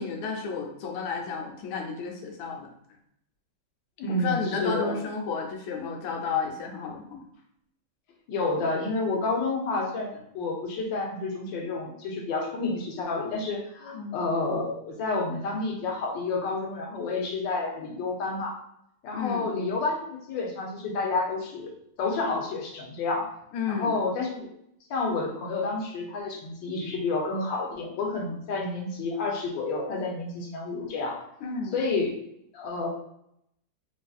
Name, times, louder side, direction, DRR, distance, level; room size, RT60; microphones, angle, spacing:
voice 1, 0.0-2.7 4.1-7.3 13.9-14.2 19.1-19.5 23.5-24.0 31.4-31.8, left 5 dB, 90° left, 1 dB, 1.5 m, -32 dB
voice 2, 4.0-4.9 8.3-18.6 19.0-23.3 23.7-24.5 24.9-31.2 31.7-32.2 32.5-32.9, left 3 dB, 70° left, 1 dB, 1.4 m, -30 dB
3.9 x 2.5 x 2.3 m, 0.74 s
omnidirectional pair, 2.2 m